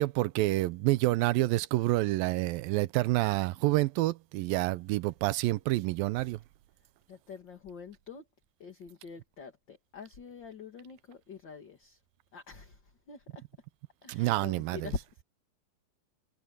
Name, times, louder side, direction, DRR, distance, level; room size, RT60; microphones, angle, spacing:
voice 1, 0.0-6.4 14.1-14.9, right 18 dB, 85° right, 2.4 m, -28 dB
voice 2, 7.1-8.2 8.6-12.0 12.3-12.8 13.1-13.4 14.0-15.0, left 4 dB, 35° left, 2.3 m, -44 dB
omnidirectional pair, 4.1 m